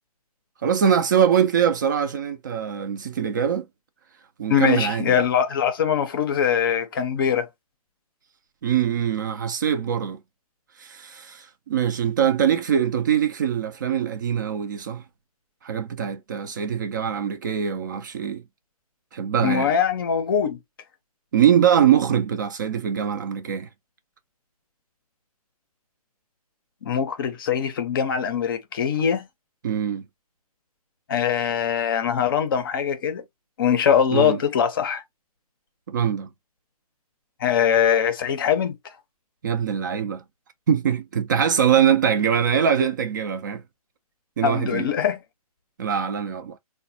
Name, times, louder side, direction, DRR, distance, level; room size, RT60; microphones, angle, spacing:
voice 1, 0.6-3.7 4.4-5.2 8.6-10.2 10.8-15.0 15.6-18.4 19.1-19.7 21.3-23.7 29.6-30.0 34.1-34.4 35.9-36.3 39.4-40.2 40.7-43.6 44.4-44.9 45.8-46.6, right 8 dB, 30° right, 0.4 m, -23 dB
voice 2, 4.5-7.5 19.4-20.6 26.8-29.3 31.1-33.2 33.6-35.0 37.4-38.8 44.4-45.2, left 8 dB, 35° left, 0.6 m, -22 dB
3.8 x 2.1 x 2.6 m
figure-of-eight pair, 135°, 20 cm